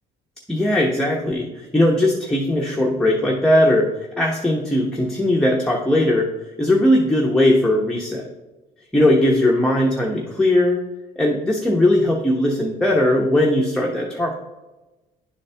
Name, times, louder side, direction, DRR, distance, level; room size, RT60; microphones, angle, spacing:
voice 1, 0.5-3.9 4.2-6.3 6.6-8.3 8.9-10.8 11.2-14.4, left 1 dB, 5° left, -1 dB, 0.8 m, -19 dB
10.0 x 4.1 x 3.3 m, 1.1 s
cardioid pair, 110°, 17 cm